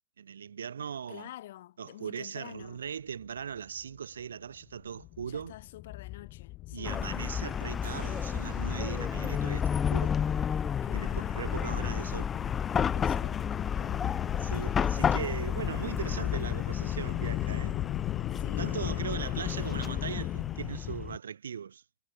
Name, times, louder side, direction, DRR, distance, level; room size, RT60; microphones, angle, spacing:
voice 1, 0.2-1.3 1.8-5.5 6.7-10.2 10.9-12.3 14.4-17.8 18.6-21.8, right 7 dB, 75° right, 1.5 m, -39 dB
voice 2, 1.1-2.8 5.3-7.0 10.8-11.6 12.9-14.1 15.0-15.3 18.3-20.2, left 14 dB, 60° left, 6.7 m, -48 dB
sound 1, 3.8-3.9 4.2-4.3 4.6-21.2, left 19 dB, 45° left, 0.6 m, -37 dB
Chatter / Car passing by / Traffic noise roadway noise, 6.8-21.1, left 7 dB, 25° left, 1.4 m, -32 dB
sound 2, 7.8-11.9, right 19 dB, 60° right, 4.1 m, -55 dB
figure-of-eight pair, 85°, 0 cm